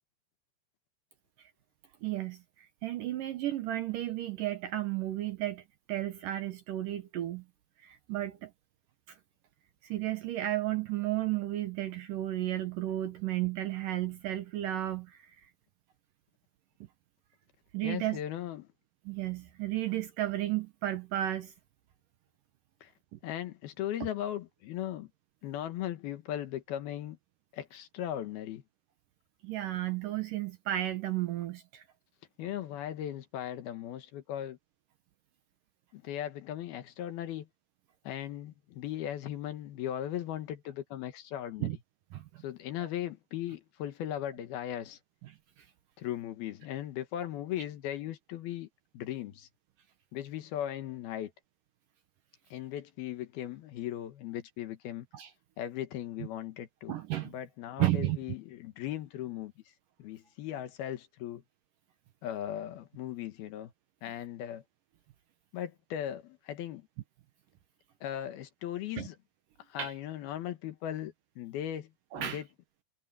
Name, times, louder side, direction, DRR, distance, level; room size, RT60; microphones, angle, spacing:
voice 1, 2.0-5.6 5.9-7.4 7.8-8.5 9.8-15.2 17.7-18.2 19.1-21.5 23.1-23.2 29.4-31.8 41.6-41.8 42.1-42.4 55.1-55.3 56.9-57.3 57.8-58.2 69.0-69.1 69.8-69.9 72.1-72.4, right 14 dB, 70° right, 2.2 m, -33 dB
voice 2, 17.8-18.7 22.8-22.9 23.2-25.1 25.4-27.2 27.5-28.6 32.4-34.6 35.9-37.5 38.0-41.7 42.4-45.0 46.0-48.7 48.9-49.5 50.1-51.3 52.5-55.1 55.6-57.0 57.2-59.6 60.0-61.4 62.2-63.7 64.0-64.6 65.5-66.9 68.0-69.2 69.7-72.5, left 11 dB, 70° left, 3.1 m, -38 dB
omnidirectional pair, 4.8 m